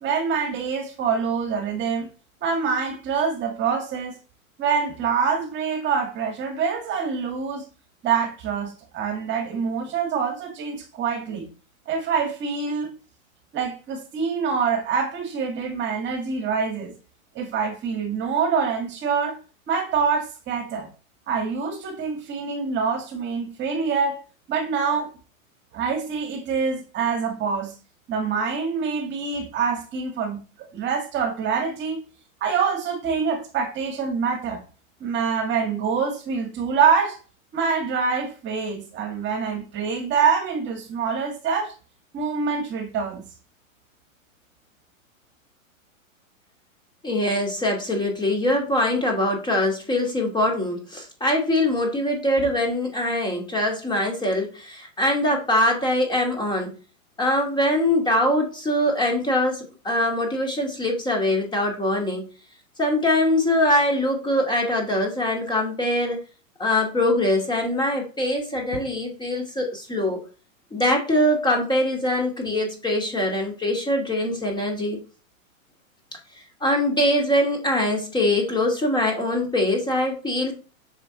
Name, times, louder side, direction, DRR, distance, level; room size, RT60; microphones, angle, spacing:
voice 1, 0.0-2.1 2.4-4.2 4.6-7.6 8.0-11.5 11.9-12.9 13.5-16.9 17.4-19.4 19.7-20.9 21.3-24.2 24.5-25.1 25.7-27.7 28.1-30.4 30.7-32.0 32.4-34.6 35.0-37.2 37.5-41.7 42.1-43.3, right 6 dB, 25° right, 2.2 m, -25 dB
voice 2, 47.0-56.7 57.2-62.3 62.8-66.2 66.6-70.2 70.7-75.0 76.6-80.5, left 1 dB, 10° left, 2.1 m, -23 dB
6.8 x 6.5 x 4.3 m
hypercardioid pair, 130°, 41 cm